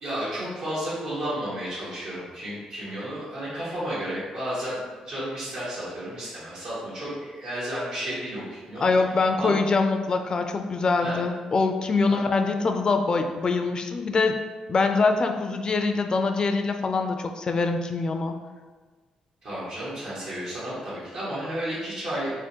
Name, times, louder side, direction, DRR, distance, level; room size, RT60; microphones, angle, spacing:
voice 1, 0.0-4.8 5.0-8.8 9.4-9.5 11.0-11.2 12.1-12.2 19.4-22.3, right 1 dB, 70° right, -11 dB, 1.5 m, -32 dB
voice 2, 8.8-14.4 14.7-18.4, left 4 dB, 40° left, 6 dB, 0.4 m, -24 dB
3.6 x 2.2 x 4.3 m, 1.4 s
cardioid pair, 85°, 2 cm